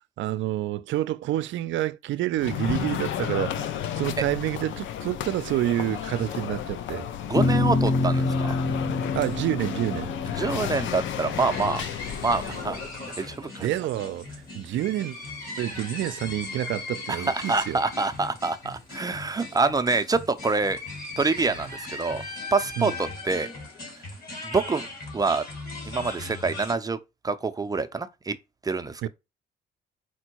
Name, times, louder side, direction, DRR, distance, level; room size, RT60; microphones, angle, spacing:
voice 1, 0.2-3.7 4.0-7.1 9.1-10.1 13.6-15.2 15.6-17.8 22.8-22.9 29.0-29.1, right 13 dB, 70° right, 0.4 m, -28 dB
sound 1, 2.4-13.0, left 10 dB, 75° left, 0.4 m, -33 dB
voice 2, 7.2-8.6 10.4-11.8 12.2-12.8 13.2-13.7 17.1-20.8 21.2-22.2 22.5-23.5 24.4-24.8 25.1-25.4 25.9-27.0 27.2-28.4 28.6-29.1, right 4 dB, 20° right, 0.5 m, -26 dB
sound 2, 7.4-13.9, left 3 dB, 25° left, 0.8 m, -28 dB
sound 3, 11.3-26.7, left 3 dB, 50° left, 2.2 m, -38 dB
4.4 x 2.2 x 4.5 m
cardioid pair, 90°, 20 cm